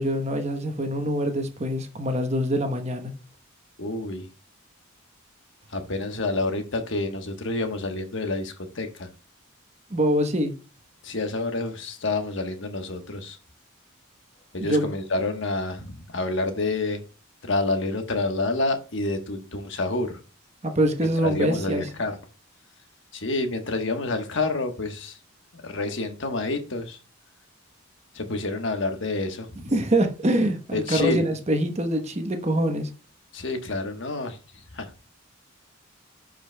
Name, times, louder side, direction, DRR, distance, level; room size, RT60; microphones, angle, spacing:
voice 1, 0.0-3.1 9.9-10.5 14.6-14.9 20.6-21.8 29.7-32.9, right 1 dB, 30° right, 1.0 m, -24 dB
voice 2, 3.8-4.3 5.7-9.1 11.0-13.4 14.5-17.0 17.4-20.2 21.2-22.2 23.1-25.2 25.5-27.0 28.1-29.7 30.7-31.3 33.3-34.4 34.7-34.9, left 2 dB, 60° left, 1.2 m, -28 dB
11.5 x 5.1 x 2.2 m
head